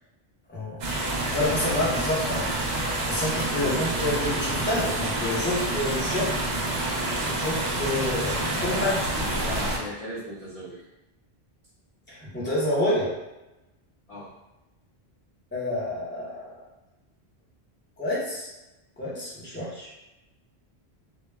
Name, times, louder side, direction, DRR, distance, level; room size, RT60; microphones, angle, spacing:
sound 1, 0.8-9.8, right 1 dB, 55° right, 0.6 m, -28 dB
voice 1, 1.3-2.6 3.1-6.3 7.2-8.9 12.1-13.1 15.5-16.7 18.0-18.5 19.0-19.9, left 1 dB, 10° left, -7 dB, 0.7 m, -28 dB
voice 2, 3.4-3.9 8.7-10.9 14.1-14.3, left 1 dB, 45° left, -7 dB, 0.5 m, -38 dB
2.1 x 2.1 x 3.3 m, 0.99 s
omnidirectional pair, 1.1 m